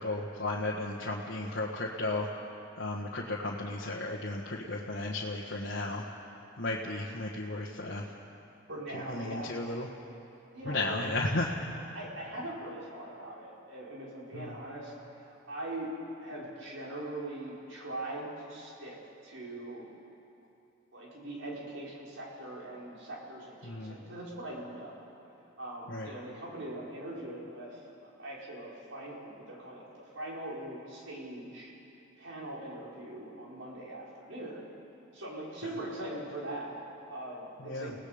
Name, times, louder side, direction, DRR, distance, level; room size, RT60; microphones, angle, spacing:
voice 1, 0.0-2.3 2.7-6.0 6.6-8.0 8.9-9.9 10.6-11.5 14.3-14.6 23.6-24.0 25.9-26.1 37.6-37.9, left 2 dB, 70° left, -3 dB, 1.5 m, -34 dB
voice 2, 8.7-9.5 10.5-11.0 11.9-15.9 16.2-19.0 19.2-19.9 20.9-25.0 25.6-29.9 30.1-31.7 32.2-34.7 35.1-36.8 37.1-37.9, right 1 dB, 80° right, -5 dB, 5.1 m, -41 dB
29.5 x 18.0 x 5.1 m, 2.8 s
head